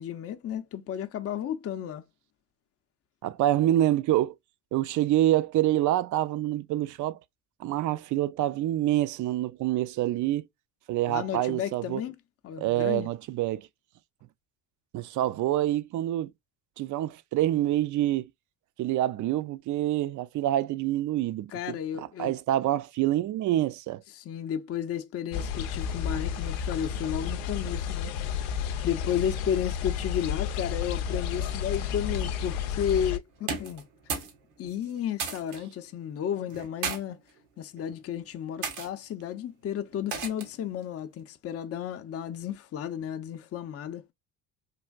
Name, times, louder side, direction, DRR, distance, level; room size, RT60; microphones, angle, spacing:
voice 1, 0.0-2.0 11.1-12.1 12.4-13.1 21.5-22.3 24.1-28.1 28.8-33.8 34.6-37.2 37.6-44.0, left 9 dB, 35° left, 0.6 m, -33 dB
voice 2, 3.2-4.3 4.7-7.2 7.6-10.5 10.9-12.0 12.6-13.7 14.9-16.3 16.8-18.3 18.8-24.0, right 13 dB, 50° right, 0.4 m, -26 dB
sound 1, 25.3-33.2, left 8 dB, 80° left, 0.6 m, -31 dB
sound 2, 33.4-34.4 34.6-35.6 36.5-37.0 37.8-38.0 38.6-38.9 40.1-40.6, right 5 dB, 85° right, 1.1 m, -34 dB
3.3 x 2.5 x 2.2 m
hypercardioid pair, 65°, 41 cm